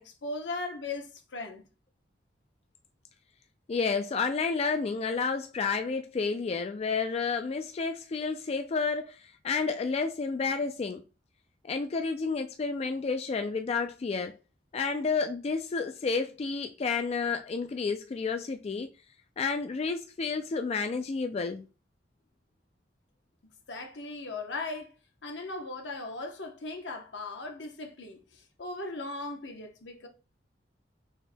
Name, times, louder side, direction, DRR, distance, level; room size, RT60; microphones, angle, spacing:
voice 1, 0.0-1.7 23.7-24.9 25.2-30.1, left 2 dB, 85° left, 0.9 m, -38 dB
voice 2, 3.7-11.0 11.6-14.3 14.7-18.9 19.4-21.7, left 4 dB, 35° left, 0.3 m, -30 dB
4.9 x 4.2 x 2.2 m
head